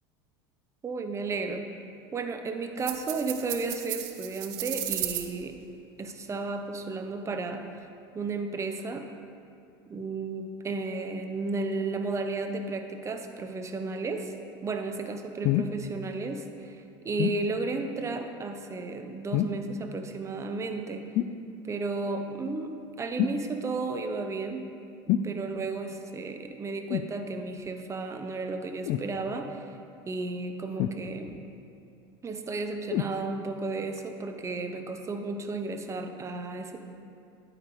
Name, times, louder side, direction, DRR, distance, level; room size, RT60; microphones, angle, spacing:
voice 1, 0.8-1.7 2.1-5.6 6.0-7.6 8.1-9.1 9.9-14.3 14.6-21.0 21.7-22.7 23.0-24.7 25.2-29.6 30.1-31.4 32.2-36.8, right 3 dB, 25° right, 6 dB, 0.7 m, -33 dB
sound 1, 2.8-5.3, right 13 dB, 65° right, 0.7 m, -34 dB
sound 2, 15.4-15.8 17.2-17.4 19.3-19.7 21.1-21.4 23.2-23.4 25.1-25.3 26.9-27.1 28.8-29.1 30.8-31.4 32.9-33.2 34.0-34.1, left 10 dB, 55° left, 0.4 m, -27 dB
9.6 x 8.8 x 3.2 m, 2.5 s
supercardioid pair, 105°, 13 cm